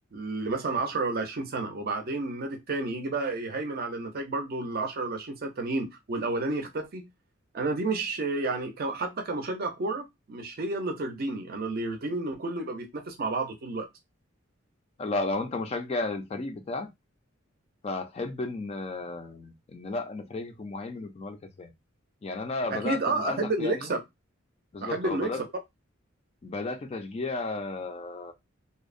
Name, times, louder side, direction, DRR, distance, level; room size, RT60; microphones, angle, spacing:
voice 1, 0.1-7.1 7.5-13.9 22.7-24.0 24.8-25.3, right 3 dB, 45° right, 0.5 m, -31 dB
voice 2, 15.0-16.9 17.8-21.7 22.2-23.9 24.7-25.4 26.4-28.3, left 3 dB, 30° left, 0.3 m, -33 dB
2.7 x 2.0 x 2.4 m
head